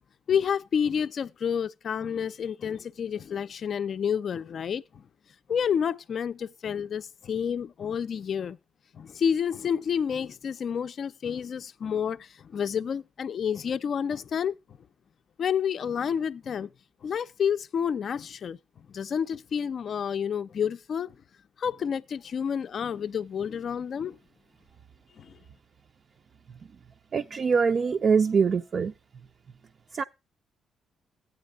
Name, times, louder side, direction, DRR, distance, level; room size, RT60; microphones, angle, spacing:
voice 1, 0.3-5.0 5.5-8.6 8.9-14.6 15.4-16.7 17.0-18.6 18.9-21.1 21.6-24.2 25.2-25.3, left 7 dB, 55° left, 0.4 m, -29 dB
voice 2, 27.1-28.9 29.9-30.0, right 5 dB, 45° right, 0.5 m, -23 dB
15.0 x 9.2 x 2.3 m
cardioid pair, 90°, 0 cm